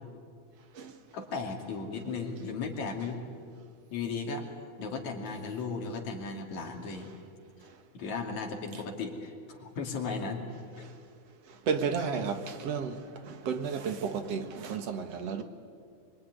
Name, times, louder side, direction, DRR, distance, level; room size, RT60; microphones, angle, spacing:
voice 1, 1.1-3.2 3.9-4.5 4.8-7.1 7.9-10.5 12.1-12.3, left 4 dB, 70° left, 3.9 m, -36 dB
voice 2, 11.7-13.0 13.3-15.4, right 6 dB, 60° right, 2.4 m, -32 dB
26.0 x 23.0 x 9.6 m
omnidirectional pair, 3.4 m